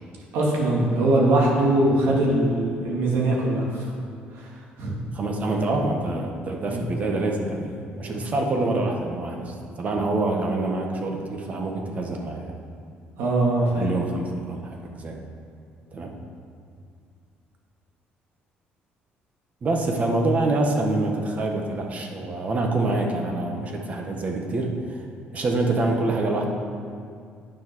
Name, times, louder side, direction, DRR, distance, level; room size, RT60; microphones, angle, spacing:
voice 1, 0.3-3.9 4.3-4.5 4.8-4.9 6.6-6.8 13.2-13.9, right 1 dB, 75° right, -3 dB, 2.7 m, -21 dB
voice 2, 5.1-12.5 13.8-15.2 15.9-16.1 19.6-25.0 25.3-26.5, right 2 dB, 40° right, 2 dB, 1.5 m, -26 dB
9.3 x 7.3 x 6.3 m, 2.3 s
cardioid pair, 115°, 4 cm